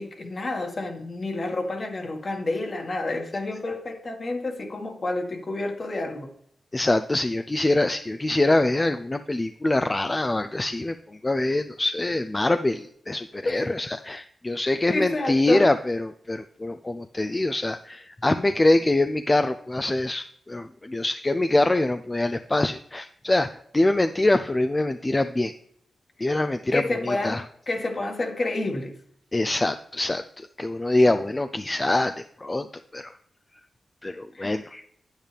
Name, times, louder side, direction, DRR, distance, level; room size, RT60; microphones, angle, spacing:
voice 1, 0.0-6.3 13.4-13.7 14.6-15.7 26.2-26.3 26.7-29.0 31.1-31.2 34.3-34.6, left 2 dB, 50° left, 3 dB, 1.7 m, -29 dB
voice 2, 6.7-23.5 23.7-25.5 26.2-27.4 29.3-32.7 32.9-33.1 34.0-34.9, left 2 dB, 25° left, 9 dB, 0.4 m, -24 dB
9.0 x 8.9 x 3.4 m, 0.67 s
cardioid pair, 60°, 0 cm